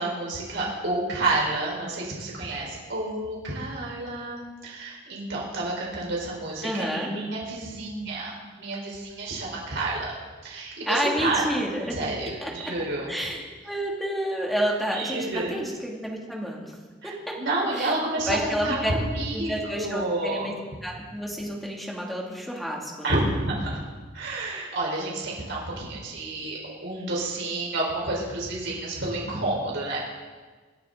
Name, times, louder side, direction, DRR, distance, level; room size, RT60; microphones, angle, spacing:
voice 1, 0.0-10.2 10.4-11.4 11.9-13.1 14.9-15.5 17.0-19.5 19.8-20.5 23.0-23.8 24.1-30.1, right 2 dB, 65° right, -3 dB, 4.7 m, -29 dB
voice 2, 6.6-7.1 10.9-12.0 12.4-12.7 13.1-16.7 17.0-17.9 18.3-18.9 19.3-20.5 20.8-23.2, equal, ahead, -2 dB, 2.5 m, -30 dB
26.0 x 9.9 x 4.0 m, 1.4 s
head